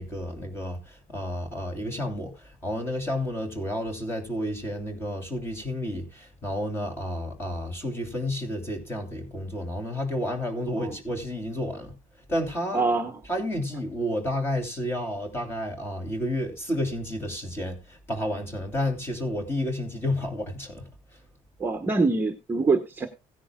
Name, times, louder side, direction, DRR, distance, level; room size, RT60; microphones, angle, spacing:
voice 1, 0.0-11.9 12.3-12.8 13.3-21.2, left 1 dB, 20° left, 2.9 m, -31 dB
voice 2, 12.7-13.2 21.6-23.1, right 3 dB, 15° right, 1.0 m, -25 dB
17.0 x 10.0 x 2.2 m
cardioid pair, 180°, 13 cm